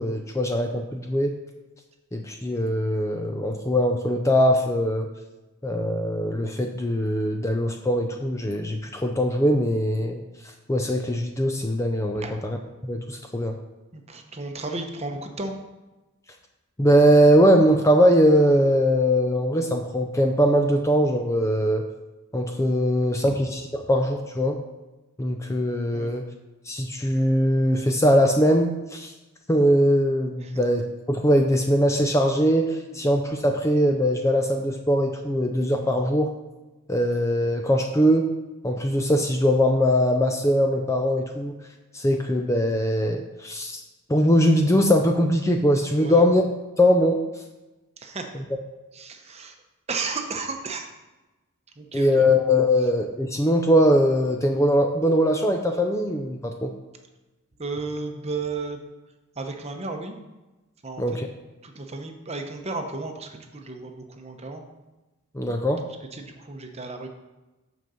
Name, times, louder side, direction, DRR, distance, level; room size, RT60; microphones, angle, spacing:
voice 1, 0.0-1.3 2.1-5.1 5.6-10.2 10.7-12.6 12.8-13.6 16.8-21.8 22.3-24.6 25.2-26.2 26.7-29.1 29.5-36.3 36.9-38.3 38.6-41.5 41.9-43.8 44.1-46.4 46.8-47.2 51.9-56.7 61.0-61.3 65.3-65.8, equal, 15° left, 3 dB, 0.5 m, -21 dB
voice 2, 13.9-15.5 25.9-26.1 30.4-30.6 46.0-46.2 48.0-48.3 48.9-49.6 49.9-50.9 51.8-52.3 57.6-58.8 59.4-60.2 60.8-61.2 61.6-64.6 66.1-67.1, right 3 dB, 30° right, 4 dB, 0.9 m, -33 dB
6.4 x 5.2 x 6.9 m, 1.1 s
head